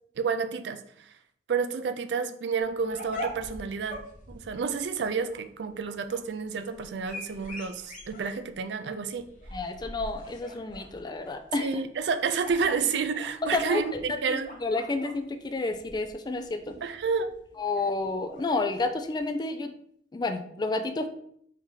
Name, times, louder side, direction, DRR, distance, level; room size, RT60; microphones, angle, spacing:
voice 1, 0.2-1.1 1.5-4.0 4.3-9.3 11.6-14.5 16.8-17.3, right 5 dB, 70° right, 10 dB, 0.4 m, -30 dB
sound 1, 2.6-19.2, equal, 50° left, 0.9 m, -43 dB
voice 2, 9.5-11.7 13.4-14.0 14.3-16.7 17.6-19.7 20.1-21.1, left 3 dB, 25° left, 8 dB, 0.4 m, -30 dB
4.9 x 2.8 x 3.7 m, 0.68 s
head